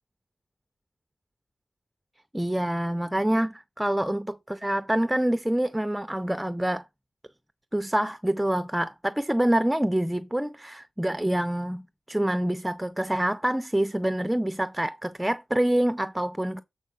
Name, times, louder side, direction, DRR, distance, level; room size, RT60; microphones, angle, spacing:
voice 1, 2.3-6.8 7.7-16.6, right 1 dB, 5° right, 0.5 m, -26 dB
7.4 x 4.3 x 5.3 m
wide cardioid pair, 105°, 0 cm